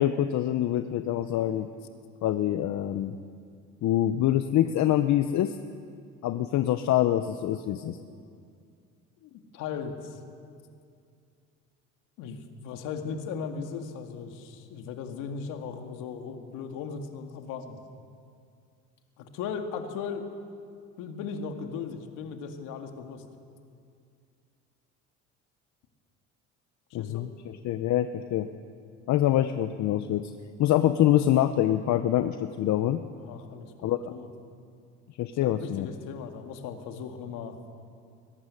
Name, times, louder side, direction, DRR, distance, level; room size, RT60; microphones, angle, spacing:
voice 1, 0.0-1.7 2.2-3.1 3.8-5.6 6.2-8.0 26.9-27.3 27.6-28.5 29.1-30.3 30.6-33.0 33.8-34.1 35.2-35.9, left 12 dB, 60° left, 10 dB, 0.9 m, -25 dB
voice 2, 9.2-10.2 12.2-17.8 19.2-20.3 21.0-23.2 26.9-27.3 33.2-34.3 35.4-37.6, left 6 dB, 75° left, 5 dB, 2.2 m, -37 dB
22.5 x 12.0 x 9.9 m, 2.3 s
supercardioid pair, 80°, 32 cm